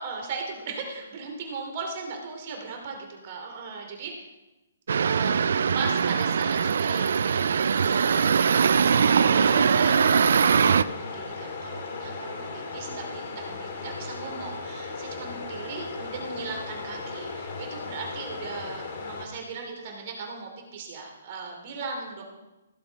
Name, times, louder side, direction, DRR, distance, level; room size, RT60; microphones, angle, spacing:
voice 1, 0.0-4.1 5.0-9.0 9.4-22.2, right 4 dB, 45° right, 2 dB, 2.8 m, -38 dB
sound 1, 4.9-10.8, right 6 dB, 65° right, 0.4 m, -21 dB
sound 2, 8.9-19.3, left 4 dB, 45° left, 2.2 m, -36 dB
16.5 x 7.2 x 4.1 m, 1.0 s
hypercardioid pair, 140°, 0 cm